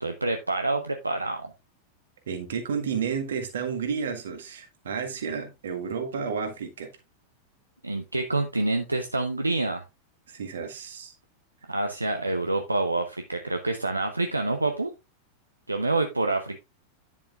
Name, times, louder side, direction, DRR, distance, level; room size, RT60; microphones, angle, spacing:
voice 1, 0.0-1.5 7.8-9.8 11.7-14.9 15.7-16.6, right 2 dB, 85° right, 0.8 m, -27 dB
voice 2, 2.3-6.9 10.3-11.1, right 6 dB, 65° right, 1.7 m, -31 dB
10.0 x 7.1 x 2.5 m
figure-of-eight pair, 90°, 0 cm